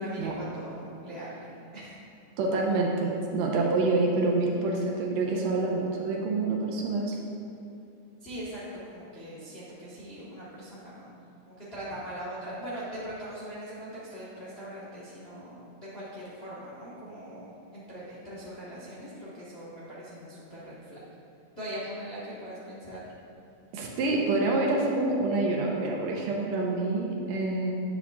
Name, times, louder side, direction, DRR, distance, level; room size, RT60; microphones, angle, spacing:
voice 1, 0.0-2.0 8.2-11.2 11.4-21.0 21.6-23.1, equal, 70° left, -9 dB, 0.5 m, -41 dB
voice 2, 2.4-7.2 23.7-27.7, right 2 dB, 75° right, -1 dB, 1.9 m, -27 dB
8.3 x 8.2 x 2.4 m, 2.6 s
omnidirectional pair, 3.4 m